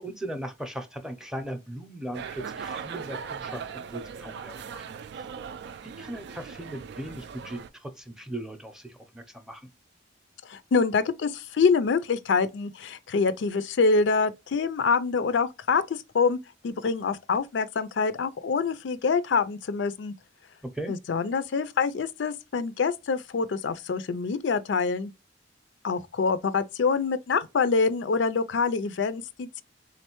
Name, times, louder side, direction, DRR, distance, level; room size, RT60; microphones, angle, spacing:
voice 1, 0.0-4.9 5.8-9.7 20.6-20.9, right 1 dB, 5° right, 0.6 m, -38 dB
sound 1, 2.1-7.7, right 6 dB, 65° right, 0.3 m, -39 dB
voice 2, 10.5-16.4 16.6-20.1 20.9-25.1 25.8-29.6, left 5 dB, 70° left, 0.4 m, -25 dB
3.8 x 3.2 x 3.0 m
head